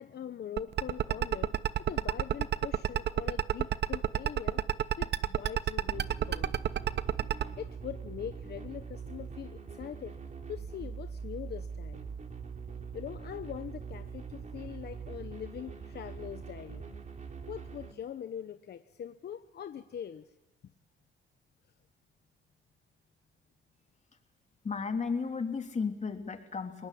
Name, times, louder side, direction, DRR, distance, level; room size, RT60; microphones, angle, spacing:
voice 1, 0.0-4.6 5.0-6.6 7.3-10.2 10.5-12.0 12.9-16.9 17.5-20.3, left 9 dB, 55° left, 9 dB, 1.0 m, -42 dB
sound 1, 0.6-7.5, right 10 dB, 60° right, 1.0 m, -28 dB
sound 2, 5.9-17.9, right 5 dB, 40° right, 3.2 m, -43 dB
voice 2, 24.6-26.9, left 5 dB, 35° left, 4 dB, 3.4 m, -34 dB
29.5 x 19.5 x 8.6 m, 0.99 s
cardioid pair, 90°, 20 cm